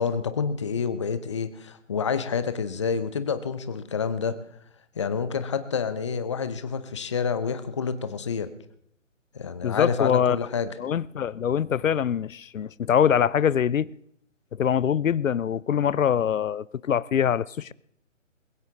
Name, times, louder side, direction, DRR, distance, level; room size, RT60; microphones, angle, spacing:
voice 1, 0.0-4.4 5.0-8.5 9.3-10.7, left 6 dB, 25° left, 0.7 m, -28 dB
voice 2, 9.6-10.4 10.8-13.9 14.6-17.7, left 8 dB, 80° left, 0.5 m, -24 dB
21.0 x 16.5 x 3.7 m
figure-of-eight pair, 150°, 39 cm